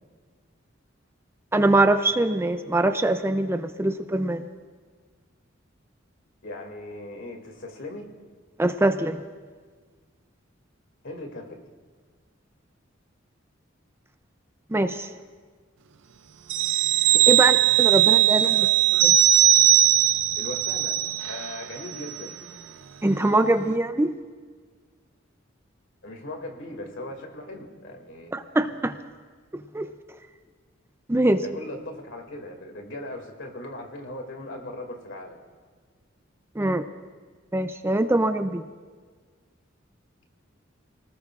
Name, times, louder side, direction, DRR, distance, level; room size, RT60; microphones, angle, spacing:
voice 1, 1.5-4.5 8.6-9.2 14.7-15.1 17.3-18.7 19.0-19.1 23.0-24.1 28.3-28.9 29.7-29.9 31.1-31.4 36.6-36.9 37.5-38.6, right 2 dB, 15° right, 9 dB, 0.5 m, -23 dB
voice 2, 6.4-8.1 11.0-11.6 17.4-17.5 18.4-18.8 20.4-22.6 26.0-28.3 31.4-35.4, left 1 dB, 70° left, 3 dB, 2.4 m, -38 dB
sound 1, 16.5-21.6 21.9-22.1, right 13 dB, 70° right, 0.5 m, -19 dB
29.0 x 19.0 x 2.5 m, 1.5 s
head